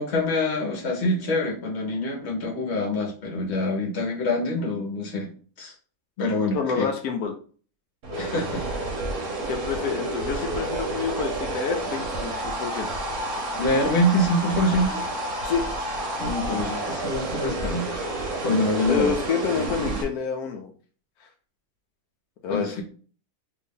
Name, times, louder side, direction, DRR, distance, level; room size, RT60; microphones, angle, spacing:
voice 1, 0.0-5.3 5.6-5.7 6.2-6.9 8.2-8.6 13.5-15.0 16.2-18.0 18.4-19.1 22.5-22.8, left 1 dB, 50° left, -1 dB, 1.2 m, -25 dB
voice 2, 6.5-7.3 9.1-9.2 9.4-13.0 15.4-15.7 18.9-20.7 21.2-21.3 22.4-22.8, left 6 dB, 90° left, 4 dB, 1.1 m, -28 dB
sound 1, 8.0-20.0, right 2 dB, 60° right, 1.2 m, -30 dB
2.9 x 2.6 x 3.6 m, 0.42 s
omnidirectional pair, 1.6 m